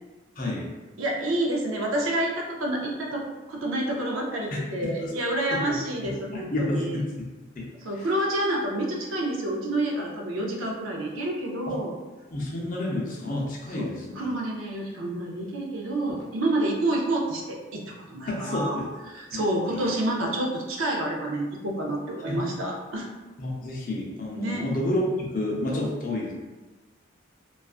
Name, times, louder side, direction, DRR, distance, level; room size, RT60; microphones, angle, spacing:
voice 1, 0.4-0.7 4.5-5.1 5.5-5.6 6.0-7.7 8.0-8.1 11.7-11.8 12.3-14.3 18.2-18.9 19.3-19.4 19.7-19.8 22.3-22.4 23.4-26.3, left 1 dB, 40° left, -3 dB, 0.5 m, -30 dB
voice 2, 1.0-7.0 7.8-11.9 13.7-18.8 19.1-23.1 24.4-24.7, right 1 dB, 80° right, 0 dB, 0.5 m, -28 dB
2.4 x 2.3 x 2.3 m, 1.2 s
head